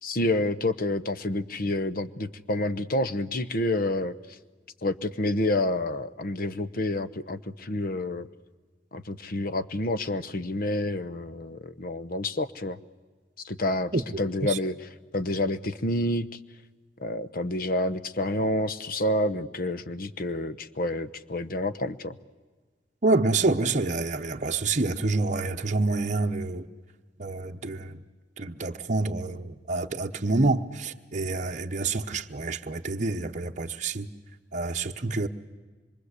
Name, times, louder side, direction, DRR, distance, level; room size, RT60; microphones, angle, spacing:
voice 1, 0.0-4.4 4.8-8.3 8.9-12.8 13.4-13.9 14.2-16.3 17.0-22.1, left 1 dB, 55° left, 0.9 m, -28 dB
voice 2, 23.0-26.7 27.2-28.0 28.4-34.1 34.5-35.3, right 3 dB, 40° right, 0.9 m, -27 dB
26.0 x 23.5 x 8.3 m
head